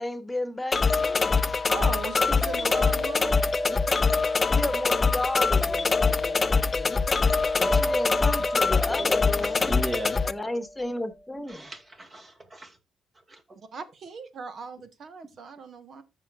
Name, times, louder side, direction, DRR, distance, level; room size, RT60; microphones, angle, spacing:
voice 1, 0.0-1.6 4.5-7.0 7.6-9.6 10.2-11.7, left 1 dB, 10° left, 1.5 m, -33 dB
sound 1, 0.7-10.3, left 4 dB, 30° left, 0.5 m, -24 dB
voice 2, 1.7-3.4 7.8-8.0 13.5-16.0, right 5 dB, 55° right, 1.3 m, -38 dB
sound 2, 1.8-11.0, equal, 10° right, 3.9 m, -35 dB
voice 3, 8.9-10.2 11.5-12.8 13.3-13.4, right 1 dB, 30° right, 2.4 m, -36 dB
14.5 x 5.2 x 2.4 m
cardioid pair, 90°, 0 cm